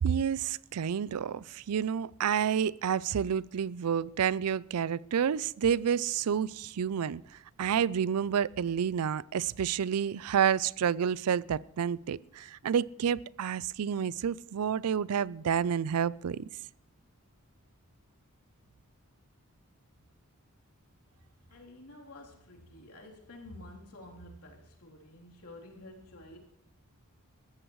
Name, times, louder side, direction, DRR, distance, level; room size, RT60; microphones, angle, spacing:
voice 1, 0.0-7.2 7.6-16.5, right 8 dB, 90° right, 0.4 m, -29 dB
voice 2, 21.5-26.4, left 1 dB, 85° left, 3.4 m, -50 dB
21.0 x 14.0 x 3.1 m
head